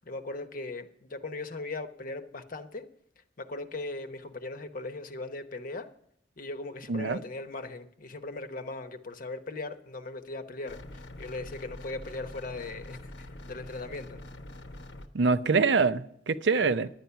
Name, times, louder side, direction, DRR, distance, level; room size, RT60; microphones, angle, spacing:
voice 1, 0.0-2.9 3.4-5.9 6.4-13.1 13.5-14.2 16.6-16.7, left 2 dB, 50° left, 0.9 m, -39 dB
voice 2, 6.9-7.2 15.1-16.9, right 4 dB, 75° right, 0.6 m, -25 dB
sound 1, 10.7-15.1, left 1 dB, 75° left, 1.0 m, -45 dB
10.5 x 9.6 x 5.7 m
head